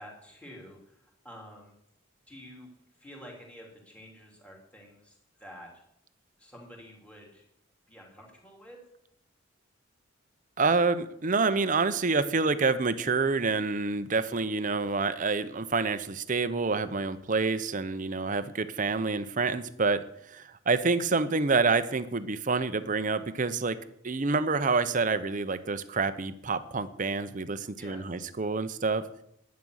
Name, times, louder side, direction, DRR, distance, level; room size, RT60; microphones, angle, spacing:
voice 1, 0.0-1.7 2.3-2.7 3.0-5.7 6.4-7.4 7.9-8.8 14.0-14.1 27.8-28.0, equal, 5° left, -1 dB, 2.9 m, -49 dB
voice 2, 10.6-23.8 24.0-29.1, right 4 dB, 40° right, 12 dB, 0.7 m, -27 dB
11.0 x 9.5 x 6.4 m, 0.75 s
head